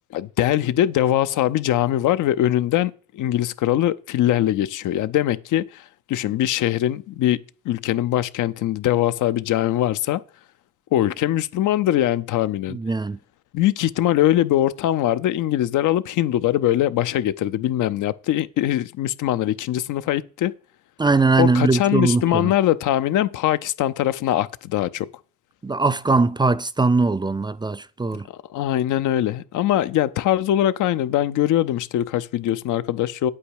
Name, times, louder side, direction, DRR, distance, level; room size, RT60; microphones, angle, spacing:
voice 1, 0.1-10.2 10.9-12.8 13.5-20.5 21.4-25.1 28.3-33.3, left 12 dB, 85° left, 0.8 m, -22 dB
voice 2, 12.7-13.2 21.0-22.5 25.6-28.3, right 3 dB, 15° right, 0.4 m, -20 dB
9.0 x 8.6 x 4.8 m
cardioid pair, 90°, 30 cm